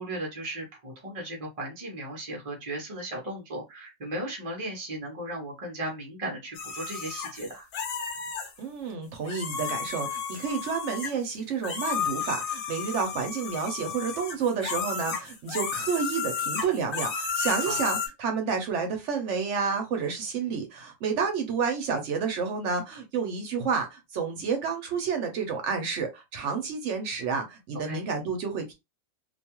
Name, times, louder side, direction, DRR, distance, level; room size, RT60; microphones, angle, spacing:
voice 1, 0.0-7.7 17.6-17.8 27.8-28.0, right 1 dB, 35° right, 0.6 m, -36 dB
sound 1, 6.5-8.5 9.2-11.3 11.6-18.1, left 6 dB, 55° left, 0.7 m, -33 dB
voice 2, 8.6-28.7, right 5 dB, 70° right, 0.9 m, -30 dB
2.5 x 2.2 x 2.8 m
omnidirectional pair, 1.3 m